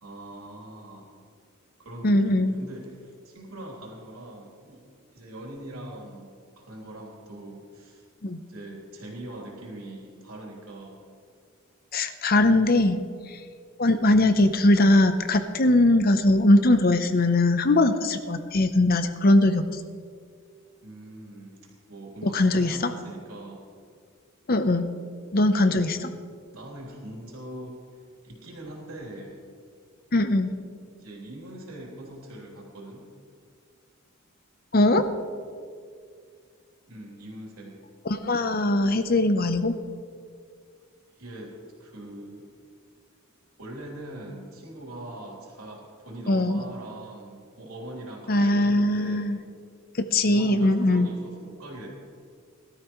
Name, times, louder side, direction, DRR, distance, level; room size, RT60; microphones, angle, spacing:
voice 1, 0.0-1.2 1.8-4.9 5.1-8.0 8.5-11.0 20.8-21.6 21.9-23.7 25.7-26.2 26.5-27.8 28.2-29.4 31.0-33.0 36.9-37.8 41.2-42.5 43.6-49.3 50.2-51.9, right 1 dB, 90° right, -3 dB, 3.4 m, -42 dB
voice 2, 2.0-2.5 8.2-8.4 11.9-13.0 13.3-13.4 13.8-19.8 22.2-22.9 24.5-24.9 25.3-26.1 30.1-30.5 34.7-35.1 38.0-39.8 46.3-46.6 48.3-49.4 50.0-51.1, left 2 dB, 45° left, 9 dB, 0.8 m, -21 dB
20.5 x 13.0 x 3.1 m, 2.1 s
head